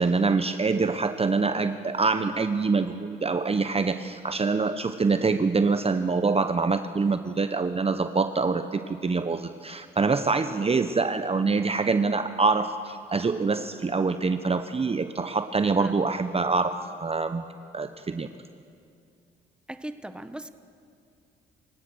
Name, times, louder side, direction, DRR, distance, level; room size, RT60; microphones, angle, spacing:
voice 1, 0.0-17.4 17.7-18.3, right 4 dB, 30° right, 10 dB, 0.9 m, -25 dB
voice 2, 19.7-20.5, right 1 dB, 5° right, 10 dB, 1.3 m, -38 dB
28.0 x 16.5 x 6.3 m, 2.4 s
supercardioid pair, 55°, 21 cm